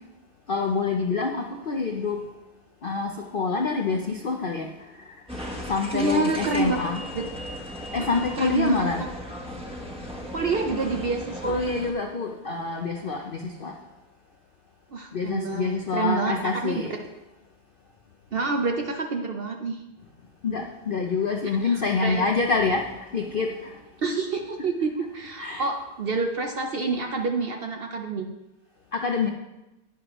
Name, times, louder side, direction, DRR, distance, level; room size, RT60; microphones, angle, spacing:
voice 1, 0.5-2.2 2.8-5.2 5.7-7.0 7.9-9.1 11.4-13.8 15.1-16.9 20.4-23.8 25.4-25.7 28.9-29.3, left 4 dB, 85° left, 2 dB, 0.4 m, -27 dB
sound 1, 5.3-11.9, equal, 5° right, 0.8 m, -36 dB
voice 2, 5.9-6.8 7.1-7.2 8.0-8.8 10.3-11.6 14.9-16.3 16.6-16.7 18.3-19.8 21.6-22.3 24.0-28.3, right 3 dB, 90° right, 3 dB, 0.5 m, -27 dB
11.5 x 9.3 x 3.0 m, 0.99 s
omnidirectional pair, 1.9 m